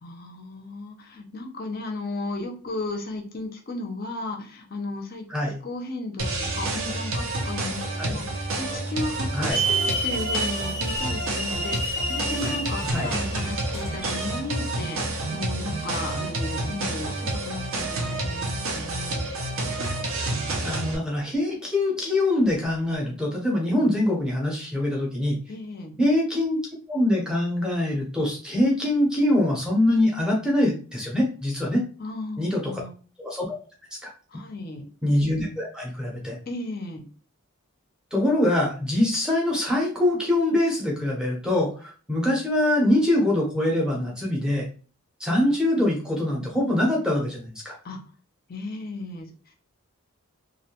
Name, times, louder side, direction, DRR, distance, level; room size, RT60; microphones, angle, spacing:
voice 1, 0.0-19.3 25.5-25.9 32.0-32.9 34.3-34.9 36.5-37.0 47.8-48.0 48.5-49.3, left 2 dB, 40° left, 4 dB, 0.5 m, -35 dB
sound 1, 6.2-21.0, right 2 dB, 65° right, 0.6 m, -29 dB
Hiss / Alarm, 9.5-14.3, right 2 dB, 85° right, 1.5 m, -30 dB
voice 2, 20.6-25.4 26.0-26.6 26.9-31.8 32.4-32.7 33.2-33.6 34.0-34.1 35.0-36.4 38.1-44.7 45.2-47.8, left 1 dB, 5° right, -2 dB, 0.6 m, -24 dB
2.4 x 2.1 x 2.8 m, 0.38 s
head